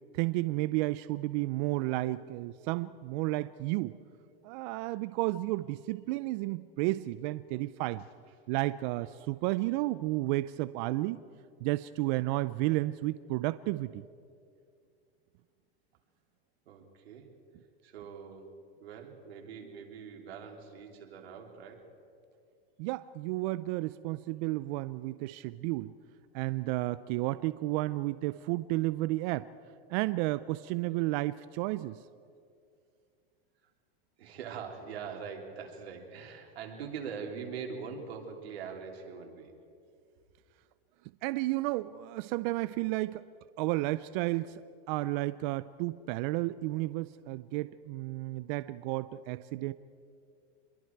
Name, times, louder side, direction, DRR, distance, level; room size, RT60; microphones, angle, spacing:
voice 1, 0.1-4.0 4.4-8.0 8.5-11.2 11.6-14.0 22.8-25.9 26.3-29.5 29.9-32.0 41.2-43.2 43.6-44.6 44.9-49.7, right 19 dB, 50° right, 15 dB, 0.5 m, -32 dB
voice 2, 16.6-17.3 17.8-21.9 34.2-39.5, right 6 dB, 85° right, 2 dB, 3.4 m, -43 dB
26.5 x 22.0 x 4.6 m, 2.4 s
supercardioid pair, 135°, 31 cm